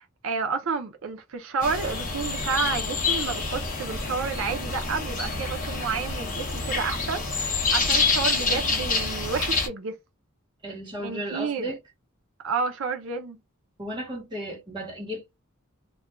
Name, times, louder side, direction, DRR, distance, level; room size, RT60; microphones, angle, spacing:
voice 1, 0.0-10.0 11.0-11.7 12.4-13.4, right 5 dB, 75° right, 0.5 m, -30 dB
sound 1, 1.6-9.7, left 4 dB, 40° left, 0.8 m, -27 dB
voice 2, 10.6-11.8 13.8-15.4, equal, 25° right, 1.1 m, -34 dB
2.4 x 2.2 x 3.0 m
head